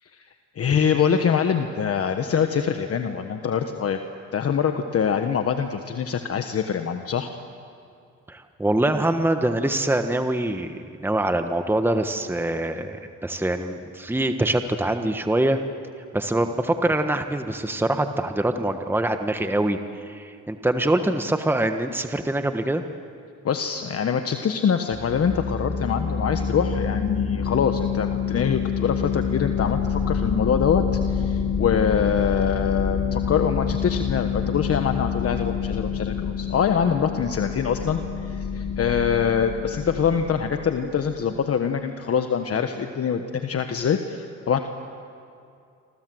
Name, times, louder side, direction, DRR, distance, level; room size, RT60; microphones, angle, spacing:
voice 1, 0.6-4.0 4.3-7.3 23.4-44.6, left 7 dB, 50° left, 6 dB, 1.4 m, -24 dB
voice 2, 8.3-15.6 16.1-22.8, right 1 dB, 5° right, 7 dB, 1.3 m, -24 dB
sound 1, 24.9-41.2, left 6 dB, 30° left, 2.5 m, -27 dB
28.0 x 24.5 x 7.9 m, 2.5 s
cardioid pair, 90°, 30 cm